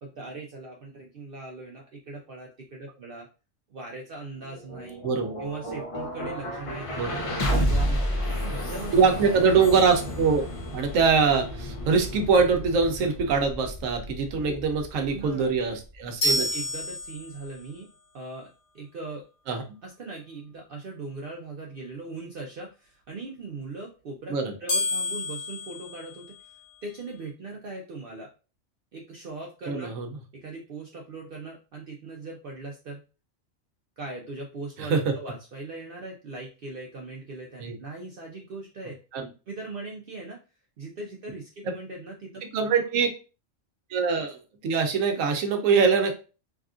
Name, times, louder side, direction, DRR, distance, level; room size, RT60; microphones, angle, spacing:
voice 1, 0.0-3.3 3.7-5.0 5.4-7.2 7.5-8.1 8.4-8.9 14.3-14.6 14.9-15.5 16.3-17.9 18.1-18.5 18.7-19.2 19.8-24.3 24.6-26.2 26.8-28.3 28.9-30.0 30.4-33.0 34.0-39.0 39.5-40.4 40.8-42.4, right 3 dB, 65° right, 1 dB, 0.6 m, -39 dB
sound 1, 4.4-16.5, equal, 45° left, 0.4 m, -32 dB
voice 2, 5.0-5.4 7.0-7.1 8.9-10.4 10.7-16.5 19.5-19.6 24.3-24.5 29.7-30.1 34.8-35.1 37.6-37.7 39.1-39.3 41.6-41.7 42.5-43.1 43.9-46.2, right 5 dB, 80° right, 4 dB, 1.0 m, -23 dB
sound 2, 9.6-10.9 16.2-17.7 24.7-26.8, left 2 dB, 80° left, 1.5 m, -31 dB
3.4 x 2.3 x 2.4 m, 0.33 s
omnidirectional pair, 1.4 m